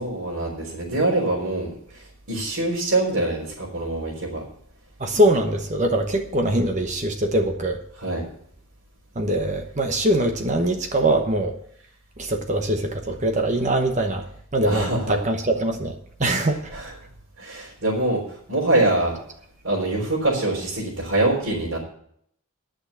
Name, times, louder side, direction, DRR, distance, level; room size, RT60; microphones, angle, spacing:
voice 1, 0.0-4.4 8.0-8.2 14.6-15.2 16.7-16.9 17.4-19.1 19.6-21.8, right 2 dB, 65° right, -7 dB, 3.9 m, -24 dB
voice 2, 5.0-7.8 9.1-11.5 12.2-16.6, right 1 dB, 35° right, 5 dB, 1.0 m, -23 dB
11.0 x 6.3 x 8.4 m, 0.66 s
head